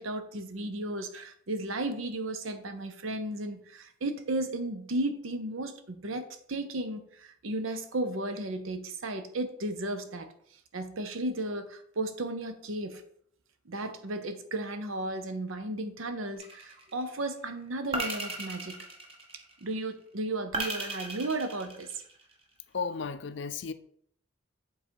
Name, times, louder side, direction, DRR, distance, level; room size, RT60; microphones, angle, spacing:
voice 1, 0.0-10.3 10.7-13.0 13.7-18.9 19.6-22.0, right 2 dB, 80° right, 0.8 m, -34 dB
sound 1, 16.4-17.0 17.9-19.6 20.5-22.3, right 2 dB, 30° right, 1.1 m, -36 dB
voice 2, 22.7-23.7, left 5 dB, 60° left, 0.4 m, -34 dB
7.6 x 3.9 x 4.5 m
head